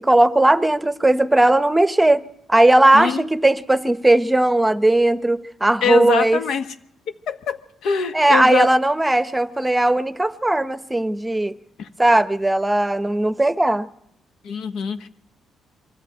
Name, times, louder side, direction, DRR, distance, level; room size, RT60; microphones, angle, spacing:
voice 1, 0.0-2.2 2.5-6.4 8.1-11.5 12.0-13.9, right 1 dB, 10° right, 0.9 m, -17 dB
voice 2, 5.8-6.7 7.3-8.7 11.8-11.9 14.4-15.1, left 7 dB, 75° left, 1.4 m, -24 dB
23.5 x 14.0 x 9.1 m
cardioid pair, 90°, 0 cm